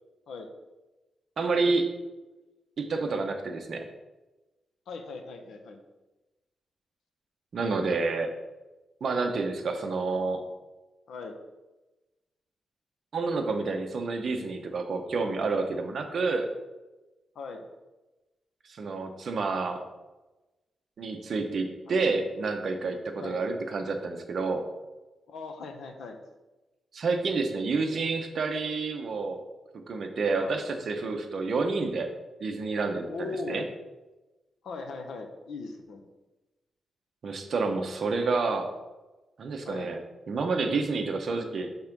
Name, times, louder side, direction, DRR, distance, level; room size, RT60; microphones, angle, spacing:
voice 1, 1.4-1.9 2.8-3.8 7.5-8.3 9.0-10.4 13.1-16.5 18.7-19.8 21.0-24.6 26.9-29.4 29.7-32.1 32.4-33.6 37.2-38.7 39.4-40.0 40.3-41.7, right 3 dB, 45° right, 4 dB, 0.8 m, -29 dB
voice 2, 4.9-5.8 11.1-11.4 17.3-17.7 21.9-22.1 23.2-23.5 25.3-26.2 30.4-30.6 33.1-33.7 34.6-36.0 39.6-39.9, left 3 dB, 80° left, 4 dB, 0.8 m, -39 dB
5.5 x 3.8 x 5.9 m, 1.1 s
wide cardioid pair, 170°, 0 cm